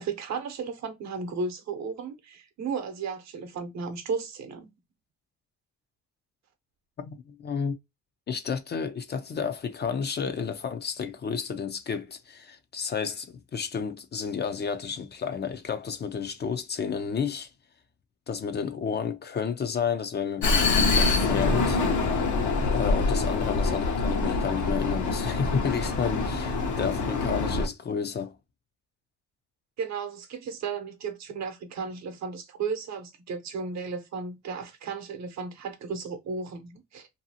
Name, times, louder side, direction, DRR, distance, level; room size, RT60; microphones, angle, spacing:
voice 1, 0.0-4.7 29.8-37.1, right 5 dB, 65° right, 0.8 m, -34 dB
voice 2, 7.0-7.8 8.3-17.5 18.3-21.8 22.7-28.4, left 6 dB, 35° left, 0.4 m, -31 dB
Vehicle, 20.4-27.7, left 3 dB, 70° left, 0.8 m, -25 dB
2.7 x 2.3 x 2.7 m
cardioid pair, 90°, 30 cm